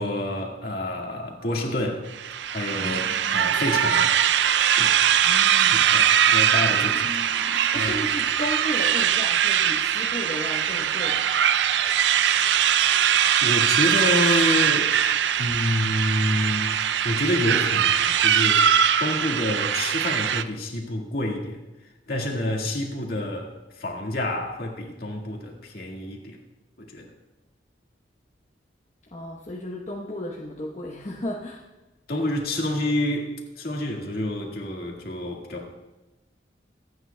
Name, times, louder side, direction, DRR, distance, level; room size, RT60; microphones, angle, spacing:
voice 1, 0.0-2.0 2.5-4.1 4.8-5.0 5.4-7.2 7.7-7.9 12.6-13.0 13.4-15.0 15.4-18.7 19.0-21.6 22.1-26.4 26.8-27.1 32.1-35.7, left 1 dB, 55° left, 0 dB, 1.8 m, -28 dB
sound 1, 1.4-8.0 8.7-9.1, equal, 25° right, 4.2 m, -46 dB
sound 2, 2.1-20.4, right 9 dB, 75° right, 0.4 m, -21 dB
voice 2, 2.8-3.6 5.2-5.9 7.7-11.3 29.1-31.6, left 1 dB, 40° left, -4 dB, 1.0 m, -34 dB
25.0 x 9.1 x 2.3 m, 1.1 s
head